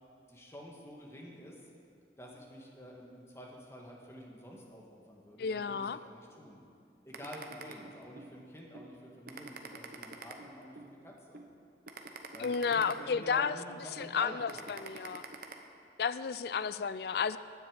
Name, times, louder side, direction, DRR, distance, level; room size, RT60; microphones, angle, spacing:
voice 1, 0.3-1.6 2.2-6.6 7.0-11.4 12.3-15.1, equal, 15° left, -2 dB, 1.6 m, -49 dB
voice 2, 5.4-6.0 12.4-13.5 14.0-15.2 16.0-17.4, left 6 dB, 60° left, 15 dB, 0.4 m, -32 dB
sound 1, 7.1-8.3 8.7-8.9 9.3-10.9 11.3-11.5 11.9-13.5 14.0-14.1 14.5-15.5, right 4 dB, 50° right, 0.9 m, -46 dB
9.7 x 7.8 x 8.8 m, 2.4 s
head